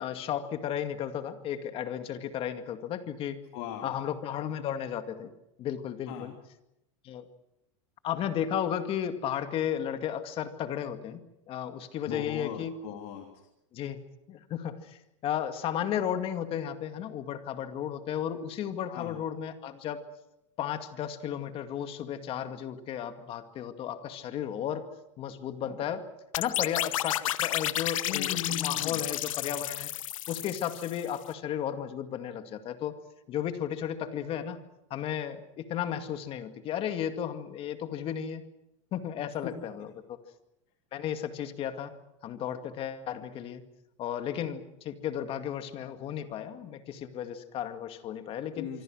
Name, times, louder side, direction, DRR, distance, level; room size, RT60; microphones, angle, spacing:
voice 1, 0.0-3.4 3.8-5.3 5.6-6.3 7.0-7.2 8.0-11.2 11.5-12.8 13.7-14.0 14.3-20.0 20.6-24.9 25.2-26.1 26.4-29.9 30.3-33.0 33.3-34.6 34.9-38.4 38.9-40.2 40.9-41.9 42.2-43.6 44.0-48.7, left 9 dB, 35° left, 8 dB, 2.2 m, -34 dB
voice 2, 3.5-4.0 6.1-6.3 12.1-13.4 18.9-19.2 28.0-29.0 39.4-39.5 48.5-48.8, left 9 dB, 55° left, 2 dB, 3.1 m, -38 dB
sound 1, 26.3-31.2, left 13 dB, 90° left, 1.1 m, -32 dB
25.5 x 25.0 x 6.3 m, 0.86 s
supercardioid pair, 140°, 17 cm